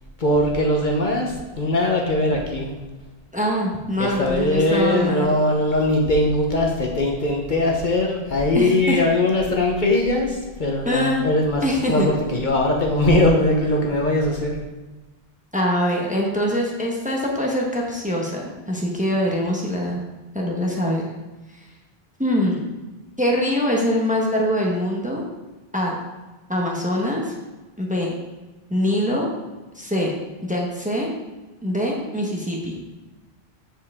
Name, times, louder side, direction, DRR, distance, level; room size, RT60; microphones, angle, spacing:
voice 1, 0.2-2.7 4.0-14.6, left 1 dB, 50° left, 0 dB, 1.1 m, -20 dB
voice 2, 3.3-5.4 8.5-9.0 10.8-11.2 11.6-12.1 15.5-20.0 20.3-21.0 22.2-22.6 23.2-25.2 25.7-26.0 26.5-27.3 27.8-28.1 28.7-29.3 29.8-30.1 30.4-31.1 31.6-32.8, equal, 10° right, -2 dB, 1.1 m, -23 dB
7.3 x 7.3 x 3.6 m, 1.2 s
omnidirectional pair, 1.1 m